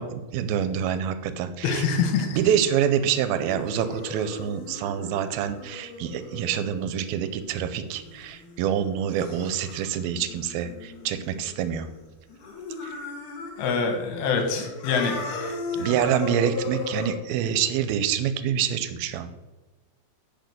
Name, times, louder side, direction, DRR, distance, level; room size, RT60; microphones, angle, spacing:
voice 1, 0.0-1.9 2.3-11.9 12.8-13.0 15.8-19.3, right 9 dB, 85° right, 10 dB, 2.5 m, -26 dB
voice 2, 1.6-2.4 13.6-15.9, left 5 dB, 85° left, 4 dB, 3.3 m, -26 dB
sound 1, 2.4-12.0 12.3-14.0 14.3-17.1, left 4 dB, 65° left, 2.6 m, -38 dB
9.2 x 4.9 x 7.7 m, 1.2 s
omnidirectional pair, 4.4 m